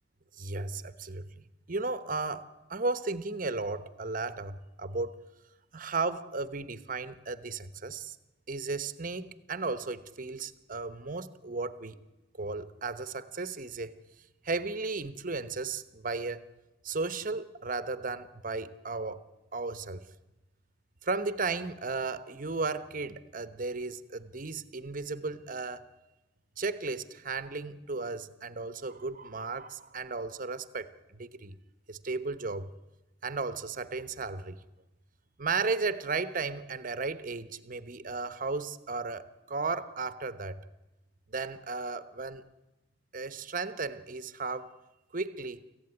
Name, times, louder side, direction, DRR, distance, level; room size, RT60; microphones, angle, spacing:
voice 1, 0.4-5.2 5.7-8.1 8.5-12.0 12.4-13.9 14.4-16.5 16.8-19.2 19.5-20.1 21.0-25.8 26.6-31.6 31.9-32.7 33.2-34.6 35.4-40.6 41.3-42.4 43.1-44.7 45.1-45.6, right 3 dB, 45° right, 13 dB, 1.0 m, -35 dB
24.5 x 15.5 x 9.7 m, 1.0 s
head